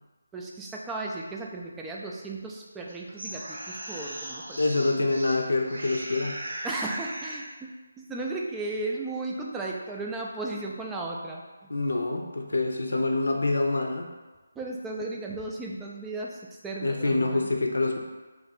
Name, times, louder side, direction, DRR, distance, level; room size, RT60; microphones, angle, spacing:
voice 1, 0.3-4.9 6.6-11.7 14.6-17.5, right 2 dB, 10° right, -2 dB, 0.4 m, -35 dB
sound 1, 2.9-5.4 5.7-7.5, right 1 dB, 60° right, 0.9 m, -38 dB
voice 2, 4.6-6.4 11.7-14.1 16.8-18.0, left 2 dB, 65° left, 3 dB, 0.6 m, -26 dB
3.2 x 2.9 x 4.2 m, 1.2 s
figure-of-eight pair, 150°, 0 cm